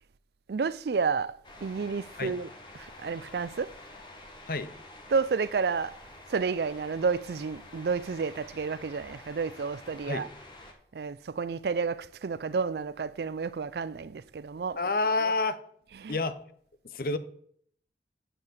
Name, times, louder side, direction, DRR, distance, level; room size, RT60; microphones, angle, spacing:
voice 1, 0.5-1.3 1.6-2.5 2.7-3.7 5.1-6.0 6.3-10.3 10.9-14.8 16.0-16.2, right 5 dB, 65° right, 0.4 m, -30 dB
windy moment at the sea, 1.4-10.7, left 2 dB, 25° left, 1.6 m, -49 dB
voice 2, 14.8-15.6 16.1-16.4 16.8-17.2, left 3 dB, 55° left, 0.7 m, -28 dB
7.7 x 6.7 x 7.9 m
head